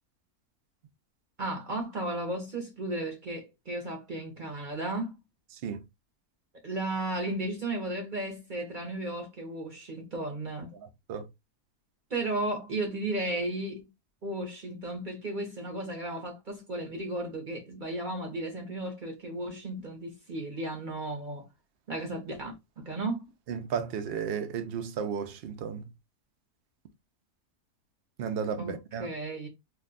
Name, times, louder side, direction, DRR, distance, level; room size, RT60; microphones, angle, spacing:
voice 1, 1.4-5.1 6.6-10.7 12.1-13.8 14.2-21.5 21.9-23.2 28.6-28.7 29.0-29.5, right 2 dB, 40° right, 0.7 m, -34 dB
voice 2, 10.7-11.3 23.5-25.8 28.2-29.1, right 7 dB, 80° right, 0.5 m, -34 dB
2.6 x 2.2 x 3.7 m
omnidirectional pair, 1.6 m